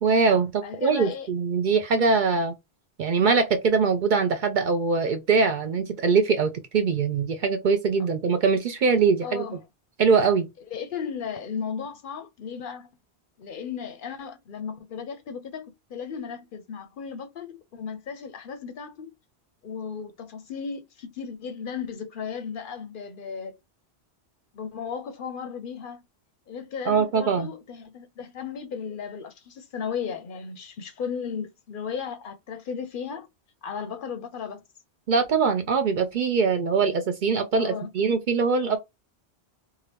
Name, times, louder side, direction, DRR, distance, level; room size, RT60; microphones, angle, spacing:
voice 1, 0.0-2.5 3.0-9.4 10.0-10.5 26.9-27.5 35.1-38.8, right 5 dB, 55° right, 0.6 m, -22 dB
voice 2, 0.6-1.3 9.2-9.6 10.7-12.9 13.4-19.1 19.6-23.6 24.5-26.0 26.5-33.3 33.6-34.6 37.6-37.9, left 6 dB, 60° left, 0.7 m, -35 dB
2.8 x 2.4 x 3.2 m
omnidirectional pair, 1.1 m